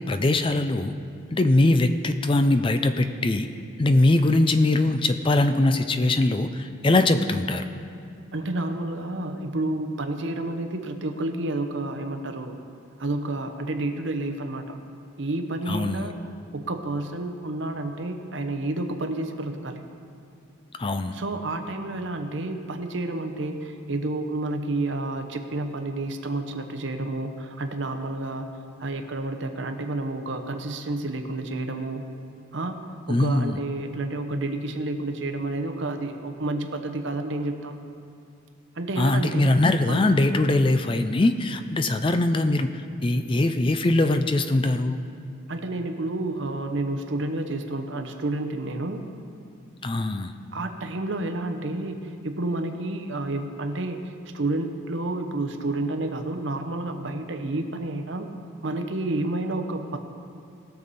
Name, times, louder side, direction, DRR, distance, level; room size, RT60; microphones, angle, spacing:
voice 1, 0.1-0.9 1.3-3.5 3.8-7.6 15.7-16.1 20.8-21.1 33.1-33.6 39.0-45.0 49.8-50.3, left 2 dB, 25° left, 9 dB, 0.4 m, -22 dB
voice 2, 8.3-12.6 13.0-14.8 15.2-16.2 16.5-19.8 21.1-28.5 28.8-32.0 32.5-37.8 38.8-39.5 39.9-40.0 45.5-49.0 50.5-58.3 58.6-60.0, right 2 dB, 60° right, 6 dB, 0.9 m, -30 dB
20.0 x 6.9 x 4.2 m, 2.4 s
head